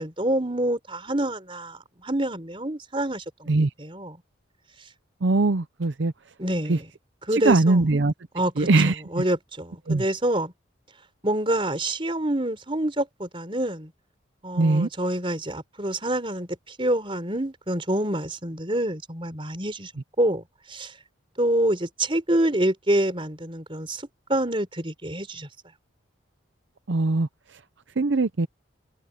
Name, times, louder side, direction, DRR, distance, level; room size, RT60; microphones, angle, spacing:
voice 1, 0.0-3.5 3.8-4.2 6.4-6.9 7.3-7.8 8.3-8.7 9.1-10.5 11.2-13.9 14.4-19.9 20.2-20.4 20.7-20.9 21.4-24.0 24.3-25.5, right 1 dB, 25° right, 4.0 m, -26 dB
voice 2, 5.2-6.1 6.7-6.8 7.3-8.1 8.6-9.2 9.9-10.0 14.5-14.9 26.9-27.3 28.0-28.5, right 3 dB, 65° right, 0.6 m, -21 dB
head